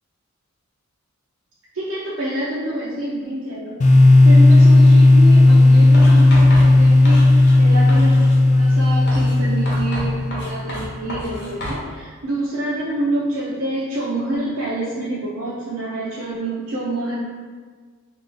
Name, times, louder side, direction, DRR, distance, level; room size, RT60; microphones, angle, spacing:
voice 1, 1.7-3.7 4.2-17.2, right 1 dB, 65° right, -7 dB, 0.5 m, -27 dB
sound 1, 3.8-10.6, left 2 dB, 35° left, 0.3 m, -12 dB
Writing, 5.9-7.6 7.9-8.4 9.1-11.9, equal, 55° left, 0.8 m, -31 dB
2.6 x 2.4 x 3.8 m, 1.5 s
head